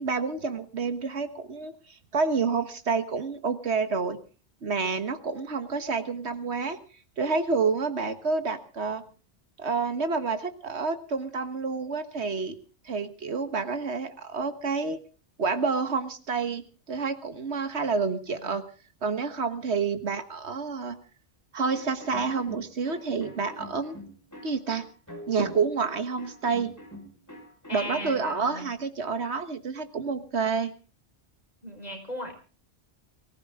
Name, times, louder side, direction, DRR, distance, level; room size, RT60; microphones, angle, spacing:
voice 1, 0.0-4.2 4.6-6.8 7.2-9.0 9.6-12.6 12.8-15.0 15.4-18.6 19.0-21.0 21.5-24.0 24.4-24.9 25.3-26.8 27.7-30.7, right 4 dB, 90° right, 9 dB, 1.7 m, -29 dB
voice 2, 18.3-18.6 27.7-28.7 31.6-32.3, equal, 40° left, 3 dB, 4.9 m, -37 dB
sound 1, 21.7-28.3, left 1 dB, 15° left, 5.3 m, -45 dB
23.0 x 15.0 x 3.7 m, 0.37 s
omnidirectional pair, 1.1 m